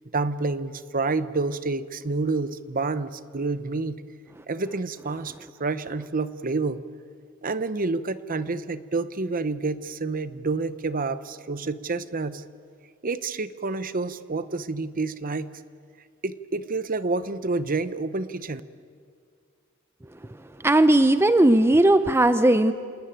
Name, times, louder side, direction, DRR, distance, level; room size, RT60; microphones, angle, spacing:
voice 1, 0.1-4.0 4.5-5.3 5.6-6.8 7.4-12.4 13.0-15.5 16.2-18.6, right 3 dB, 40° right, 13 dB, 0.8 m, -28 dB
voice 2, 20.6-22.7, right 1 dB, 10° right, 11 dB, 0.6 m, -17 dB
27.5 x 20.0 x 9.1 m, 2.1 s
head